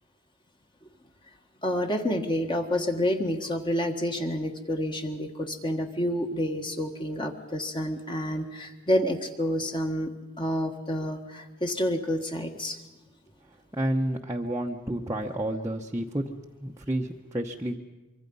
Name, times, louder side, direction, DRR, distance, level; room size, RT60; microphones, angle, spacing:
voice 1, 1.6-10.1 10.4-12.8, equal, 25° left, 4 dB, 1.5 m, -29 dB
voice 2, 13.7-16.3 16.6-17.8, right 1 dB, 15° right, -2 dB, 0.9 m, -30 dB
25.0 x 23.5 x 5.4 m, 1.2 s
head